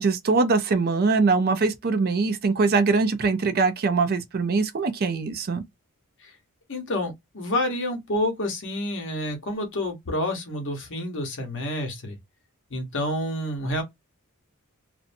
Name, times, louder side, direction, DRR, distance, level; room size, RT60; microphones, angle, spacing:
voice 1, 0.0-5.6, right 4 dB, 45° right, 0.4 m, -22 dB
voice 2, 6.7-12.2 12.7-13.8, left 1 dB, 55° left, 0.9 m, -28 dB
2.6 x 2.1 x 2.6 m
head